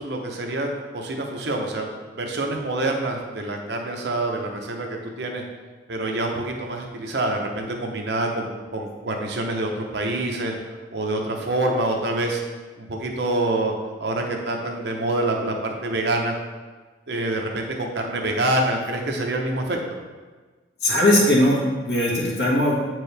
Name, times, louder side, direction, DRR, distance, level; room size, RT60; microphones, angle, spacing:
voice 1, 0.0-1.9 2.2-5.4 5.9-10.5 10.9-12.4 12.8-13.7 14.0-16.3 17.1-19.8, right 2 dB, 55° right, 1 dB, 0.8 m, -26 dB
voice 2, 20.8-22.8, left 1 dB, 55° left, -6 dB, 1.8 m, -19 dB
8.0 x 4.6 x 3.4 m, 1.3 s
head